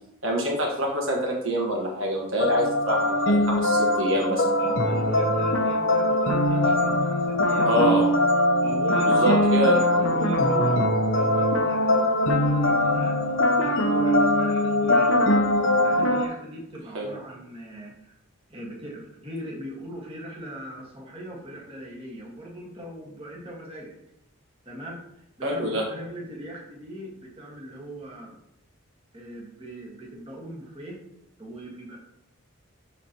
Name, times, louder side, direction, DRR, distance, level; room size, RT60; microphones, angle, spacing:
voice 1, 0.2-4.4 7.7-8.1 8.9-9.8 16.9-17.1 25.4-25.8, right 1 dB, 60° right, -1 dB, 1.4 m, -25 dB
sound 1, 2.4-16.3, left 1 dB, 60° left, 0.9 m, -22 dB
voice 2, 4.6-8.0 8.6-13.2 13.6-15.2 15.8-18.1 18.5-24.0 24.6-28.3 29.1-31.0 31.4-32.0, right 1 dB, 25° right, -3 dB, 1.7 m, -40 dB
12.0 x 4.1 x 3.0 m, 0.80 s
head